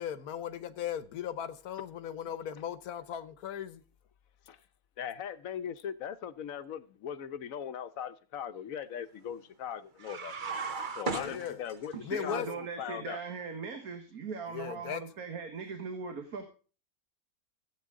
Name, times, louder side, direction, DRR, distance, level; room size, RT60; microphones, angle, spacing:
voice 1, 0.0-3.8 11.1-11.6 12.0-12.5 14.5-15.0, left 9 dB, 85° left, 1.4 m, -37 dB
voice 2, 5.0-10.6 11.0-11.9 12.2-13.2, left 9 dB, 70° left, 1.2 m, -39 dB
sound 1, 10.0-12.0, right 4 dB, 40° right, 1.0 m, -36 dB
voice 3, 11.9-16.5, right 5 dB, 80° right, 1.9 m, -40 dB
15.5 x 8.4 x 3.7 m
omnidirectional pair, 1.5 m